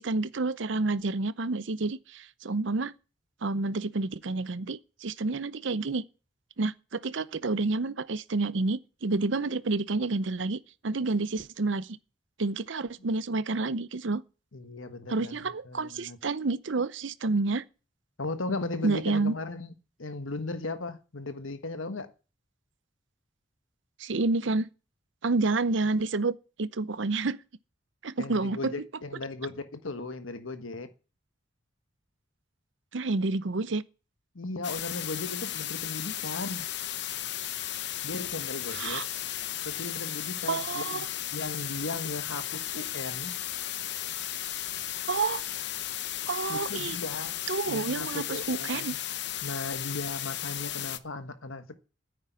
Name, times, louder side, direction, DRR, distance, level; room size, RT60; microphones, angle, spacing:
voice 1, 0.0-2.9 3.4-6.0 6.6-12.0 12.4-14.2 15.1-17.6 18.8-19.4 24.0-24.7 25.2-27.4 28.0-28.7 32.9-33.8 38.7-39.0 40.5-41.1 45.1-45.4 46.3-47.0 47.5-48.9, right 3 dB, 65° right, 0.7 m, -29 dB
voice 2, 14.5-16.2 18.2-19.7 20.0-22.1 28.2-30.9 34.3-36.7 38.0-39.0 39.6-43.3 46.5-47.4 47.7-49.0 49.4-51.8, left 2 dB, 90° left, 1.4 m, -37 dB
sound 1, 34.6-51.0, left 12 dB, 60° left, 0.8 m, -35 dB
10.0 x 8.6 x 9.5 m
head